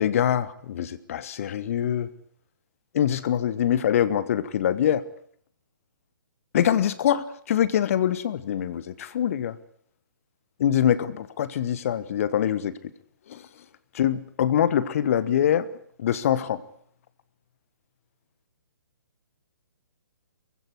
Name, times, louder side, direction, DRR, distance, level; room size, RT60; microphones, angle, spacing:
voice 1, 0.0-2.1 2.9-5.0 6.5-9.5 10.6-12.7 13.3-13.4 13.9-15.7 16.0-16.6, left 10 dB, 40° left, 16 dB, 1.2 m, -24 dB
24.0 x 16.0 x 9.8 m, 0.63 s
figure-of-eight pair, 130°, 12 cm